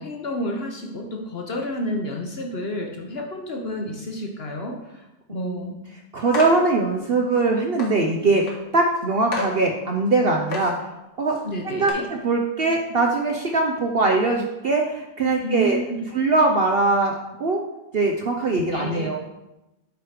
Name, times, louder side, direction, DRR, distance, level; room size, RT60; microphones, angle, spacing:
voice 1, 0.0-4.8 5.3-5.7 11.4-12.1 15.4-16.0 18.7-19.1, equal, 45° left, 2 dB, 0.8 m, -30 dB
voice 2, 5.3-5.7 6.1-8.5 8.7-10.9 11.2-11.4 11.6-15.8 16.1-17.6 17.9-19.2, right 3 dB, 60° right, 1 dB, 0.6 m, -21 dB
sound 1, 6.3-6.6 7.3-7.4 7.8-7.9 8.4-8.5 8.9-9.0 9.3-9.5 10.1-10.2 10.5-10.8 11.3-11.4 11.9-12.0, left 2 dB, 85° left, 2.1 m, -29 dB
8.0 x 4.6 x 4.9 m, 0.94 s
omnidirectional pair, 1.9 m